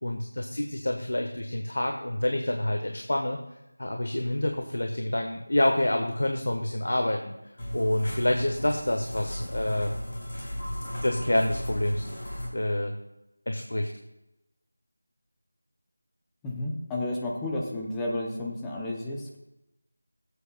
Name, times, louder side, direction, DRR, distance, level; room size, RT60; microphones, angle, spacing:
voice 1, 0.0-3.4 3.8-7.3 7.7-9.9 11.0-12.2 12.5-12.9 13.5-13.9, left 1 dB, 75° left, 4 dB, 1.1 m, -27 dB
sound 1, 7.6-12.5, equal, 20° left, 2.7 m, -35 dB
voice 2, 16.4-19.4, left 1 dB, 5° left, -3 dB, 0.6 m, -32 dB
19.5 x 8.3 x 2.3 m, 0.90 s
figure-of-eight pair, 180°, 0 cm